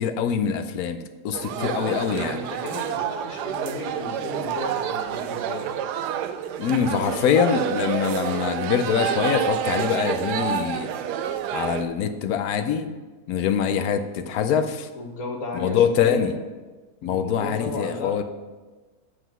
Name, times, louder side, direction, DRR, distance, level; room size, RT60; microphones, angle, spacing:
voice 1, 0.0-2.4 6.6-10.9 11.5-12.9 13.3-14.9 15.5-16.4 17.0-18.2, left 7 dB, 70° left, 10 dB, 1.0 m, -24 dB
sound 1, 1.3-11.8, right 9 dB, 85° right, 1.2 m, -28 dB
voice 2, 1.5-5.7 14.9-16.3 17.0-18.2, left 2 dB, 55° left, 2 dB, 1.5 m, -34 dB
7.7 x 5.0 x 6.0 m, 1.3 s
omnidirectional pair, 1.7 m